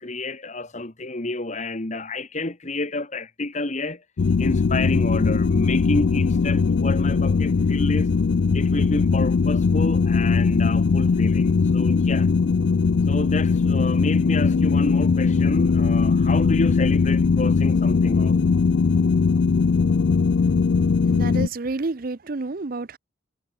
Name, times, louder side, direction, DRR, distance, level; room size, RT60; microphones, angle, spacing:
voice 1, 0.0-4.0 4.4-8.1 8.5-12.3 13.1-18.4, left 2 dB, 35° left, 1.4 m, -29 dB
sound 1, 4.2-21.5, left 4 dB, 60° left, 0.4 m, -20 dB
voice 2, 21.0-23.0, right 3 dB, 45° right, 0.6 m, -29 dB
head